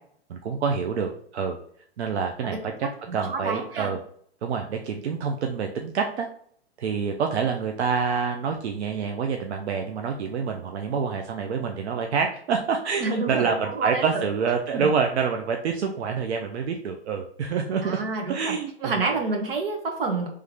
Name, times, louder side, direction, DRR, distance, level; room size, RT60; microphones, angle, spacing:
voice 1, 0.3-1.6 2.0-4.0 4.4-6.3 6.8-18.0 18.3-19.0, right 6 dB, 80° right, 3 dB, 0.6 m, -27 dB
voice 2, 3.1-3.9 13.0-14.2 14.7-14.9 17.8-18.5 18.8-20.3, right 4 dB, 60° right, 2 dB, 1.3 m, -28 dB
3.6 x 3.2 x 3.3 m, 0.64 s
hypercardioid pair, 175°, 32 cm